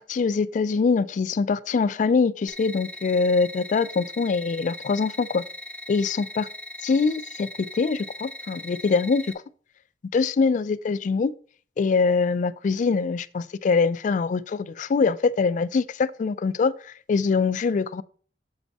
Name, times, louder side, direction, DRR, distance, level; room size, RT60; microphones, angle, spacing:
voice 1, 0.0-5.4 5.9-6.5 6.8-9.3 10.1-11.3 11.8-18.0, left 4 dB, 45° left, 0.3 m, -23 dB
sound 1, 2.5-9.3, left 1 dB, 5° left, 0.6 m, -40 dB
7.2 x 4.5 x 4.0 m
head